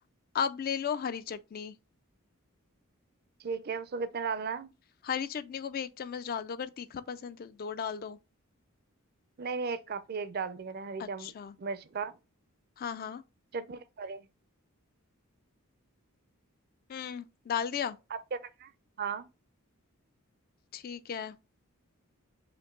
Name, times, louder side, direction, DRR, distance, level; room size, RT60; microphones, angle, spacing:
voice 1, 0.3-1.7 5.0-8.2 11.0-11.5 12.8-13.2 16.9-18.0 20.7-21.4, left 7 dB, 40° left, 0.3 m, -35 dB
voice 2, 3.4-4.7 9.4-11.3 11.6-12.1 13.5-14.3 18.1-18.7 19.0-19.3, right 5 dB, 45° right, 0.4 m, -36 dB
5.2 x 2.6 x 3.6 m
head